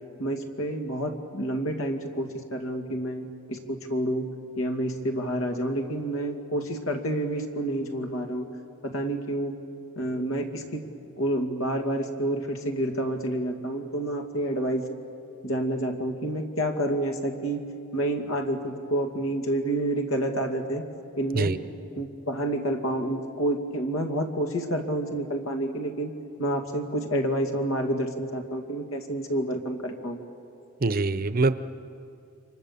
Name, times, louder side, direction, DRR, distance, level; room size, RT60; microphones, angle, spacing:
voice 1, 0.2-8.5 8.8-9.5 10.0-10.9 11.2-14.9 15.4-17.6 17.9-20.8 21.2-21.5 22.0-26.1 26.4-30.2, right 1 dB, 80° left, 4 dB, 2.4 m, -29 dB
voice 2, 30.8-31.6, right 3 dB, 45° right, 13 dB, 0.7 m, -24 dB
29.5 x 25.0 x 7.0 m, 2.6 s
head